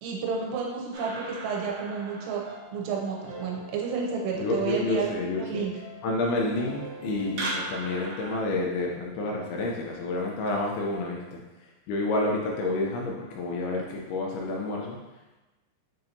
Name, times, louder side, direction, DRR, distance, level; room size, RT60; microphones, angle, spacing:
voice 1, 0.0-2.4 2.7-5.1 5.4-5.8, right 5 dB, 90° right, -1 dB, 2.8 m, -31 dB
sound 1, 0.9-8.4, right 2 dB, 70° right, 2.2 m, -40 dB
voice 2, 4.3-5.6 6.0-11.4 11.9-15.0, left 2 dB, 80° left, -1 dB, 2.4 m, -29 dB
7.4 x 2.7 x 2.6 m, 1.1 s
omnidirectional pair, 4.9 m